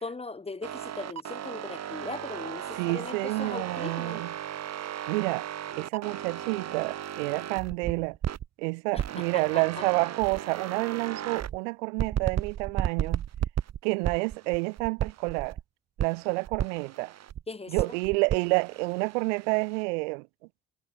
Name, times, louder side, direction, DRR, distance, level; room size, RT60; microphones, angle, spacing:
voice 1, 0.0-4.2 8.9-9.8 17.5-18.0, left 3 dB, 15° left, 0.9 m, -39 dB
sound 1, 0.6-8.5 8.9-11.6 12.0-15.6 16.0-17.4 17.8-19.8, right 10 dB, 45° right, 1.3 m, -35 dB
voice 2, 2.7-4.3 5.1-5.5 5.8-8.2 8.6-13.2 13.8-15.6 16.0-17.1 17.7-20.3, right 30 dB, 80° right, 1.1 m, -29 dB
hypercardioid pair, 55°, 37 cm